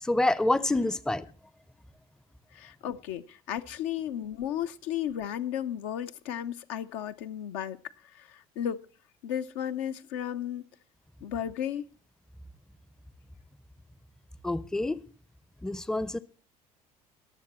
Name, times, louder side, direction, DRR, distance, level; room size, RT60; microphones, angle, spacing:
voice 1, 0.0-1.3 14.4-15.0 15.6-16.2, left 2 dB, 5° left, 0.6 m, -27 dB
voice 2, 2.5-8.8 9.2-10.7 11.2-11.8, left 10 dB, 60° left, 0.6 m, -34 dB
21.5 x 7.2 x 4.2 m
figure-of-eight pair, 60°, 19 cm